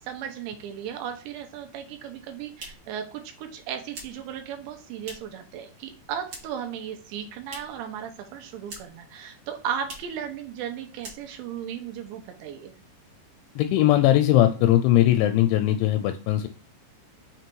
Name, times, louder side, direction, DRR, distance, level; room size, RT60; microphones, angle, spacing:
voice 1, 0.1-12.7, right 8 dB, 80° right, 5 dB, 2.8 m, -36 dB
sound 1, 2.2-5.5 5.7-6.7 7.0-7.9 8.2-9.1 9.4-9.5 9.8-10.2 10.6-10.7 11.0-11.6, right 3 dB, 55° right, 1.8 m, -44 dB
voice 2, 13.6-16.5, left 13 dB, 85° left, 8 dB, 2.6 m, -20 dB
6.8 x 3.2 x 4.5 m, 0.36 s
omnidirectional pair, 5.4 m